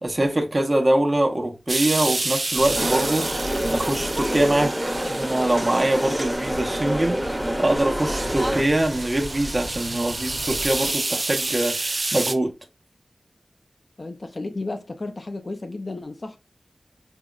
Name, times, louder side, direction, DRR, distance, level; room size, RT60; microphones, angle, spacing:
voice 1, 0.0-3.3 3.7-4.7 5.0-12.5, right 1 dB, 40° right, 0.7 m, -23 dB
sound 1, 1.7-6.9 7.3-7.4 7.8-12.3, right 2 dB, 60° right, 0.4 m, -29 dB
sound 2, 2.5-10.9, equal, 35° left, 0.8 m, -37 dB
sound 3, 2.7-8.6, right 1 dB, 15° right, 0.8 m, -27 dB
voice 2, 14.0-16.4, left 2 dB, 55° left, 0.4 m, -33 dB
4.9 x 2.0 x 2.3 m
wide cardioid pair, 70°, 0 cm